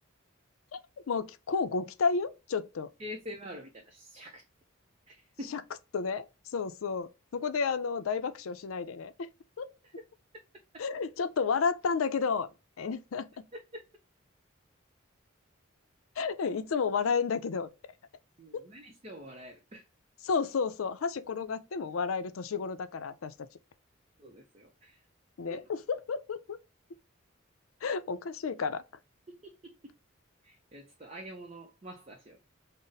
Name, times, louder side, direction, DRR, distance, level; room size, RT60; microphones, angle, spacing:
voice 1, 1.1-2.9 5.5-5.6 5.9-6.2 6.5-9.3 9.6-9.7 10.8-12.5 12.8-13.3 16.2-17.7 20.2-23.3 25.4-26.6 27.8-28.8, left 5 dB, 85° left, 0.4 m, -31 dB
voice 2, 3.0-4.4 5.1-5.6 9.8-9.9 18.4-19.9 24.2-25.0 25.5-25.6 29.3-29.9 30.4-32.5, equal, 30° right, 0.5 m, -46 dB
3.9 x 2.0 x 3.8 m
head